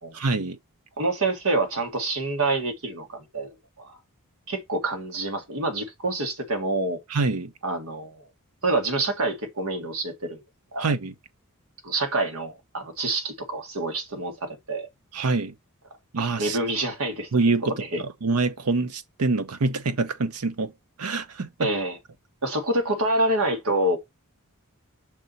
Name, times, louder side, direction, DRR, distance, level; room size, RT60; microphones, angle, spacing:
voice 1, 0.1-0.6 7.1-7.5 10.8-11.1 15.1-15.5 16.1-16.6 17.3-20.7 21.0-21.7, right 3 dB, 90° right, 0.7 m, -25 dB
voice 2, 1.0-4.0 4.5-7.0 7.6-8.2 8.6-10.4 10.7-10.9 11.8-14.9 16.4-17.3 17.8-18.0 21.6-22.0 22.4-24.0, right 2 dB, 70° right, 1.8 m, -27 dB
6.0 x 4.0 x 4.2 m
head